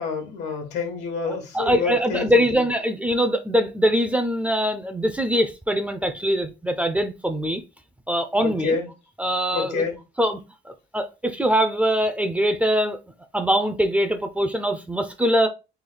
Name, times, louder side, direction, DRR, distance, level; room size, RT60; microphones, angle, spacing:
voice 1, 0.0-2.6 8.4-8.9 9.5-9.9, left 4 dB, 85° left, 1.2 m, -28 dB
voice 2, 1.2-7.6 8.1-8.8 9.2-9.9 10.2-10.4 10.7-13.0 13.3-15.5, equal, 10° right, 0.5 m, -23 dB
3.3 x 2.3 x 3.8 m
cardioid pair, 110°, 17 cm